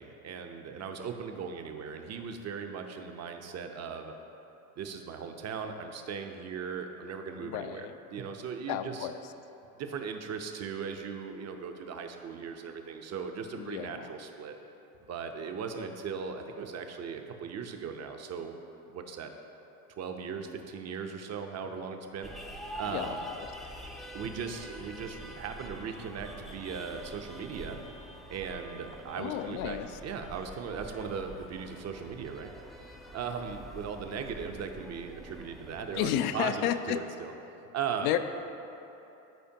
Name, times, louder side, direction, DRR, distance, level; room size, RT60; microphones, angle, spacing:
voice 1, 0.0-4.1 4.8-7.9 8.1-9.1 9.8-14.6 15.1-18.6 18.9-19.3 20.0-22.3 22.7-23.2 24.1-27.8 28.3-32.5 33.1-37.3 37.7-38.1, right 6 dB, 35° right, 5 dB, 0.8 m, -38 dB
voice 2, 7.4-7.9 8.7-9.2 13.6-14.1 22.8-23.5 29.1-29.9 35.9-37.0 38.0-38.2, left 11 dB, 70° left, 10 dB, 0.6 m, -32 dB
sound 1, 22.2-36.2, equal, ahead, 0.5 m, -46 dB
13.5 x 5.0 x 2.9 m, 2.9 s
hypercardioid pair, 80°, 44 cm